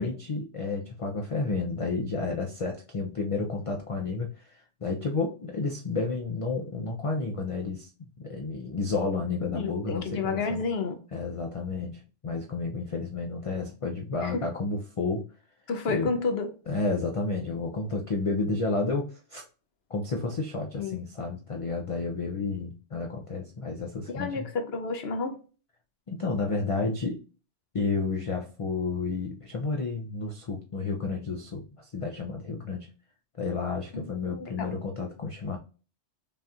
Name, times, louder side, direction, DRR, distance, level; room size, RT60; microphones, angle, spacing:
voice 1, 0.0-7.9 8.2-10.6 11.1-15.3 15.9-16.2 16.7-19.4 19.9-24.4 26.1-27.2 27.7-32.9 33.4-35.6, left 3 dB, 45° left, 0.4 m, -31 dB
voice 2, 9.5-11.0 14.2-14.5 15.7-16.5 20.7-21.0 24.1-25.3 33.9-34.7, left 4 dB, 65° left, 0.9 m, -31 dB
5.2 x 2.4 x 2.7 m
omnidirectional pair, 1.2 m